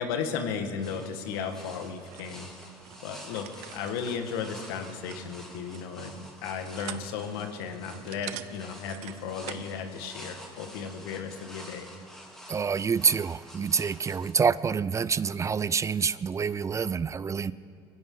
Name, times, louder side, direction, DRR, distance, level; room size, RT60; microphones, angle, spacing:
voice 1, 0.0-2.5 3.0-11.9, left 6 dB, 85° left, 6 dB, 1.6 m, -35 dB
sound 1, 0.8-14.3, equal, 5° left, 2.9 m, -49 dB
sound 2, 1.9-9.8, right 15 dB, 70° right, 0.7 m, -46 dB
voice 2, 12.5-17.5, right 6 dB, 25° right, 18 dB, 0.4 m, -27 dB
22.5 x 16.0 x 3.8 m, 2.5 s
supercardioid pair, 90°, 12 cm